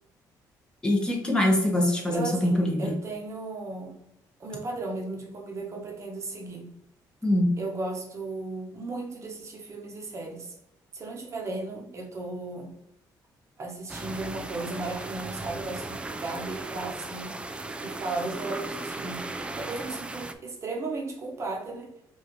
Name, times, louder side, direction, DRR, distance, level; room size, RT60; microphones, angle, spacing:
voice 1, 0.8-2.9 7.2-7.5, left 1 dB, 10° left, -2 dB, 1.2 m, -23 dB
voice 2, 2.1-4.0 4.4-6.7 7.6-10.5 10.9-12.8 13.6-17.4 17.8-21.9, right 3 dB, 40° right, 1 dB, 1.1 m, -35 dB
sound 1, 13.9-20.3, right 2 dB, 15° right, 0.3 m, -37 dB
4.9 x 2.8 x 3.1 m, 0.83 s
cardioid pair, 125°, 8 cm